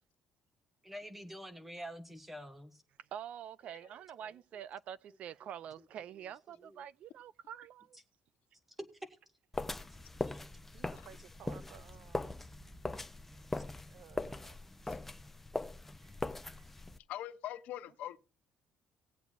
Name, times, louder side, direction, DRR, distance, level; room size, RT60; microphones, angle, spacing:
voice 1, 0.8-2.8 6.7-6.8 10.3-10.5 10.7-10.8 11.6-11.7, equal, 5° right, 1.3 m, -47 dB
voice 2, 3.1-7.9 10.7-12.2 13.9-14.3, right 9 dB, 55° right, 0.4 m, -47 dB
sound 1, 9.5-17.0, left 2 dB, 10° left, 0.5 m, -41 dB
voice 3, 17.1-18.2, left 12 dB, 75° left, 0.7 m, -42 dB
19.0 x 8.2 x 2.4 m
cardioid pair, 155°, 3 cm